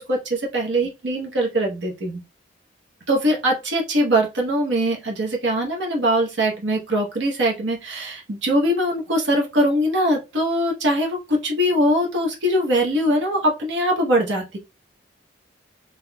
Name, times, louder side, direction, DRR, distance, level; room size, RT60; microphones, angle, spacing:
voice 1, 0.0-2.2 3.1-14.6, equal, 85° right, 0 dB, 0.9 m, -22 dB
3.5 x 3.0 x 2.2 m, 0.25 s
head